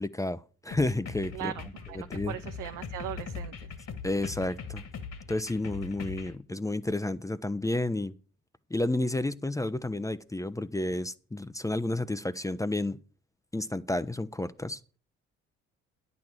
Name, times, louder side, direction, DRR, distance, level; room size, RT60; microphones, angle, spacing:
voice 1, 0.0-1.5 1.9-2.4 4.0-4.8 5.3-8.1 8.7-13.0 13.5-14.8, left 2 dB, 10° left, 0.6 m, -31 dB
sound 1, 0.7-6.4, left 5 dB, 50° left, 1.9 m, -41 dB
voice 2, 1.3-3.7, right 13 dB, 65° right, 0.7 m, -39 dB
10.5 x 6.3 x 7.3 m
hypercardioid pair, 50°, 34 cm